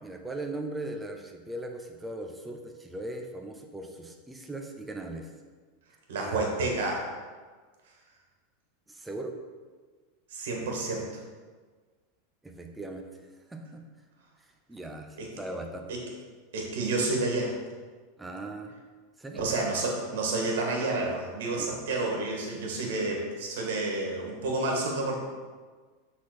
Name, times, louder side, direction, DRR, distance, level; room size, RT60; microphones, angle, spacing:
voice 1, 0.0-5.3 6.2-6.4 8.9-9.3 12.4-13.2 13.5-13.8 14.7-15.9 18.2-18.7 19.2-19.5 21.6-21.7, right 2 dB, 10° right, 3 dB, 0.8 m, -39 dB
voice 2, 6.1-7.0 10.3-11.0 15.2-15.3 15.9-16.0 16.5-17.5 19.4-25.2, right 2 dB, 80° right, 0 dB, 1.9 m, -29 dB
6.1 x 3.9 x 6.1 m, 1.5 s
supercardioid pair, 130°, 0 cm